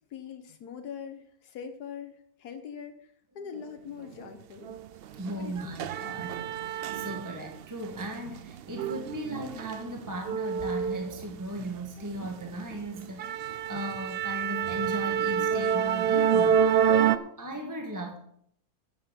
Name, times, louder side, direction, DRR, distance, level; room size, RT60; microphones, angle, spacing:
voice 1, 0.1-4.8 5.4-5.7, left 7 dB, 85° left, 6 dB, 1.5 m, -42 dB
sound 1, 4.6-4.8 5.2-7.6 7.9-11.7 12.1-12.3 12.7-12.8 13.2-17.2, right 8 dB, 85° right, 0.5 m, -28 dB
voice 2, 5.2-18.2, right 1 dB, 15° right, 2 dB, 1.5 m, -37 dB
13.5 x 8.5 x 5.2 m, 0.67 s
omnidirectional pair, 1.6 m